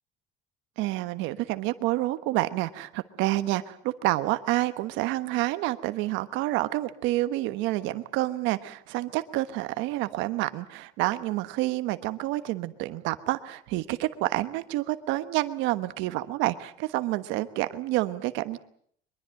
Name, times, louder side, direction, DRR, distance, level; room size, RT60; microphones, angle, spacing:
voice 1, 0.8-18.6, right 17 dB, 75° right, 12 dB, 1.3 m, -28 dB
23.5 x 22.5 x 7.7 m, 0.64 s
cardioid pair, 160°, 20 cm